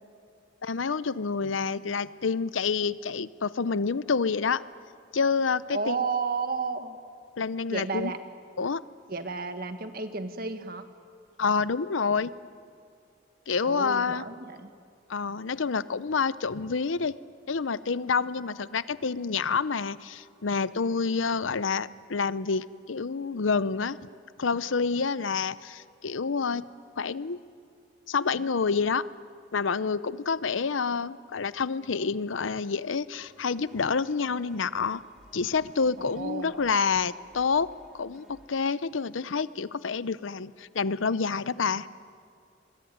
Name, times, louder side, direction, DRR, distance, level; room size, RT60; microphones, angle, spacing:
voice 1, 0.6-4.6 5.1-6.0 7.4-8.1 8.6-8.8 11.4-12.3 13.5-14.2 15.1-17.1 17.5-24.1 24.4-26.6 27.0-27.4 28.1-29.0 29.5-35.0 35.3-41.9, left 5 dB, 85° left, 16 dB, 0.7 m, -28 dB
voice 2, 5.7-7.0 7.7-8.2 9.1-10.9 13.6-14.7 36.0-36.6, right 4 dB, 50° right, 8 dB, 1.7 m, -32 dB
sound 1, 33.1-38.5, equal, 5° right, 3.2 m, -58 dB
26.0 x 22.0 x 9.4 m, 2.4 s
head